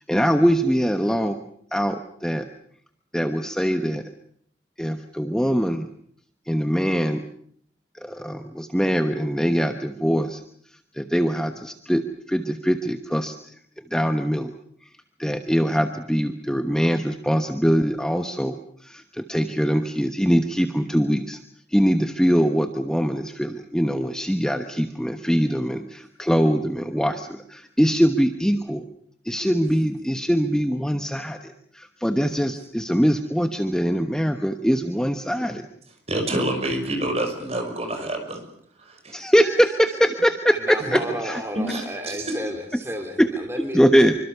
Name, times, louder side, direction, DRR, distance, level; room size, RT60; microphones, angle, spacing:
voice 1, 0.0-1.4 1.7-2.5 3.1-4.0 4.8-5.9 6.5-7.2 8.0-10.4 10.9-13.4 13.9-14.5 15.2-21.4 21.7-28.9 29.2-35.7 39.1-41.4 43.2-43.3 43.7-44.1, equal, 5° left, 7 dB, 1.1 m, -22 dB
voice 2, 36.1-38.4 38.8-39.2 40.8-40.9 41.5-42.4, right 1 dB, 35° right, 4 dB, 5.9 m, -27 dB
voice 3, 40.5-43.8, equal, 15° right, 3 dB, 2.7 m, -33 dB
26.5 x 25.0 x 6.8 m, 0.65 s
head